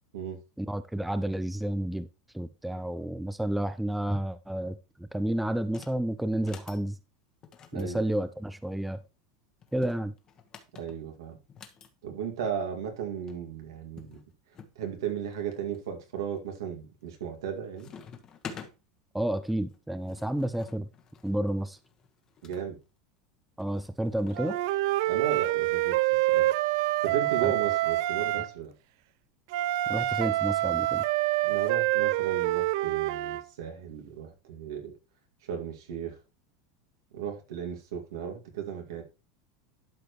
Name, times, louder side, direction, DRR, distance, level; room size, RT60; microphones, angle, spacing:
voice 1, 0.6-2.1 2.3-7.0 7.7-9.0 9.7-10.1 19.1-20.9 21.2-21.8 23.6-24.6 27.4-27.5 28.3-28.4 29.9-31.0, right 1 dB, 5° right, 0.5 m, -30 dB
sound 1, 5.6-6.0 6.3-6.8 7.4-8.8 9.6-11.9 13.0-13.1 13.3-13.4 14.0-14.8 15.3-15.8 16.4-16.8 17.1-17.5 17.8-18.7 19.7-22.7 23.6-24.7, left 6 dB, 35° left, 1.3 m, -48 dB
voice 2, 7.7-8.1 10.7-11.4 12.0-14.2 14.8-17.9 22.4-22.8 25.1-26.0 26.3-26.5 27.0-28.7 31.4-34.9 35.4-36.2 37.1-39.0, right 8 dB, 90° right, 2.1 m, -35 dB
Wind instrument woodwind instrument, 24.4-28.5 29.5-33.4, right 16 dB, 70° right, 0.3 m, -26 dB
12.0 x 4.9 x 3.1 m
supercardioid pair, 125°, 2 cm